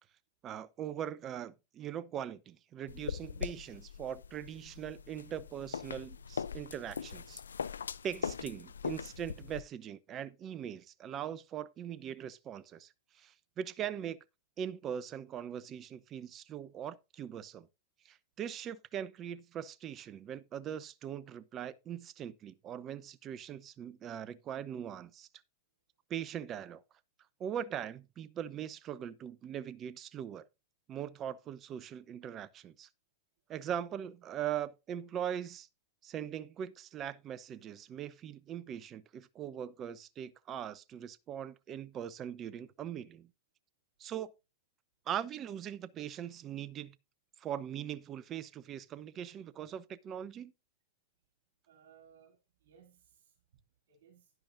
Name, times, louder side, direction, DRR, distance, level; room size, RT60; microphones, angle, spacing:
voice 1, 0.4-7.4 8.0-14.2 14.6-17.7 18.0-25.3 26.1-26.8 27.4-30.5 30.9-32.9 33.5-35.7 36.0-43.3 44.0-44.3 45.1-47.0 47.4-50.5, right 9 dB, 35° right, 0.7 m, -41 dB
sound 1, 2.9-9.6, left 6 dB, 90° left, 0.5 m, -41 dB
voice 2, 51.7-53.4 53.9-54.3, right 7 dB, 70° right, 2.7 m, -62 dB
10.5 x 10.5 x 2.6 m
hypercardioid pair, 105°, 0 cm